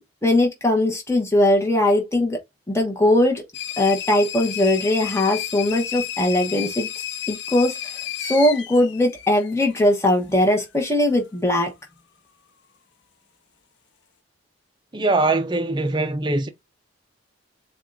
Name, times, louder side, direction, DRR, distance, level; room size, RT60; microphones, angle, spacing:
voice 1, 0.2-2.4 2.7-3.4 3.8-6.9 7.3-7.9 8.2-11.7, left 1 dB, 15° left, 1.0 m, -20 dB
sound 1, 3.5-9.9, left 10 dB, 55° left, 0.4 m, -32 dB
voice 2, 14.9-16.5, right 2 dB, 20° right, 0.5 m, -22 dB
7.1 x 2.4 x 2.6 m
head